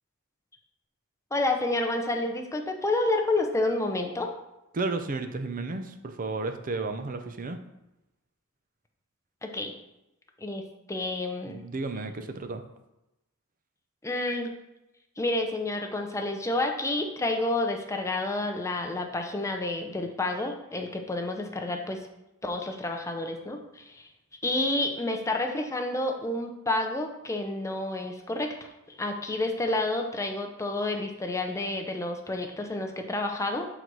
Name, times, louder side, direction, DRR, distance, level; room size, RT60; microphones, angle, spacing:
voice 1, 1.3-4.3 9.4-9.7 10.4-10.6 10.9-11.6 14.0-14.5 15.2-22.0 22.4-24.1 24.4-28.6 29.0-33.7, left 2 dB, 15° left, 3 dB, 0.6 m, -29 dB
voice 2, 4.7-7.6 11.5-12.6, right 3 dB, 40° right, 8 dB, 0.6 m, -33 dB
6.1 x 4.0 x 4.7 m, 0.93 s
head